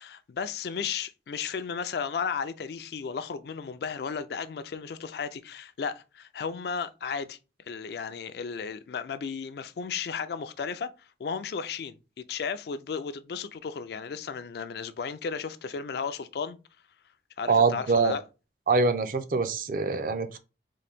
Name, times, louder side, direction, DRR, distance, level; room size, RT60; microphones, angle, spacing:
voice 1, 0.0-7.4 7.7-10.9 11.2-12.0 12.3-16.6 17.4-18.2, left 6 dB, 60° left, 0.3 m, -34 dB
voice 2, 17.5-18.1 18.7-20.4, right 4 dB, 50° right, 0.4 m, -24 dB
3.8 x 2.5 x 3.4 m
head